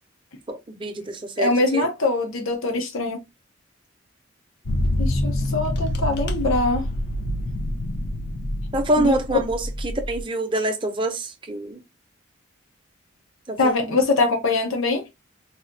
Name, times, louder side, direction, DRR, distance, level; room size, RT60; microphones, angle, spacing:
voice 1, 0.5-1.9 8.7-11.8 13.5-14.0, right 1 dB, 25° right, 0.5 m, -26 dB
voice 2, 1.4-3.2 5.0-6.9 9.0-9.1 13.6-15.0, left 2 dB, 85° left, 0.8 m, -23 dB
sound 1, 4.7-10.2, left 1 dB, 55° left, 0.5 m, -26 dB
4.0 x 2.2 x 2.6 m
head